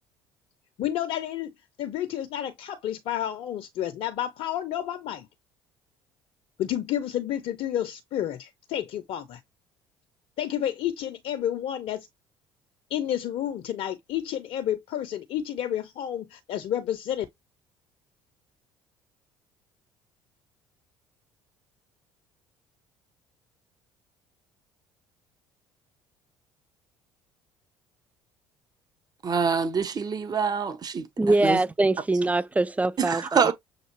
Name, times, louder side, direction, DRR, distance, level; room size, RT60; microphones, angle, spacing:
voice 1, 0.8-1.5 1.8-5.3 6.6-9.4 10.4-12.1 12.9-17.3, left 11 dB, 55° left, 0.6 m, -30 dB
voice 2, 29.2-31.1 31.4-31.6 33.0-33.5, right 6 dB, 35° right, 0.9 m, -25 dB
voice 3, 31.2-33.5, right 2 dB, 10° right, 0.4 m, -23 dB
6.5 x 2.5 x 2.9 m
hypercardioid pair, 55°, 12 cm